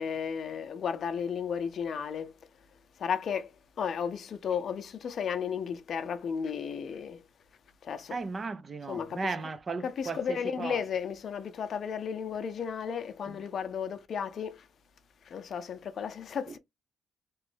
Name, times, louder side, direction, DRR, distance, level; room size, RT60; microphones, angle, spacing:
voice 1, 0.0-2.3 3.0-3.5 3.8-7.2 7.8-8.2 8.9-9.3 9.8-14.7 15.2-16.6, left 7 dB, 60° left, 0.6 m, -34 dB
voice 2, 8.1-10.8, right 4 dB, 35° right, 0.5 m, -35 dB
3.2 x 3.0 x 3.2 m
cardioid pair, 90°, 0 cm